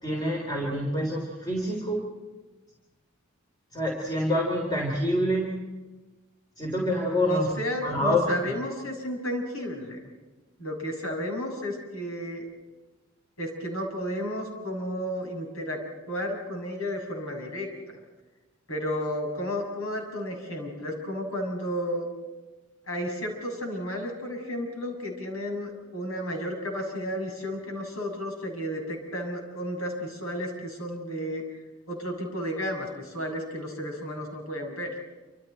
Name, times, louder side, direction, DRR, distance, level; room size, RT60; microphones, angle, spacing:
voice 1, 0.0-2.0 3.7-5.5 6.6-7.5 7.8-8.3, equal, 20° left, -1 dB, 3.6 m, -26 dB
voice 2, 7.3-10.0 10.6-12.4 13.4-15.8 16.1-18.0 18.7-22.1 22.9-31.4 31.9-34.9, equal, 85° left, 0 dB, 7.2 m, -32 dB
28.0 x 27.0 x 4.4 m, 1.2 s
head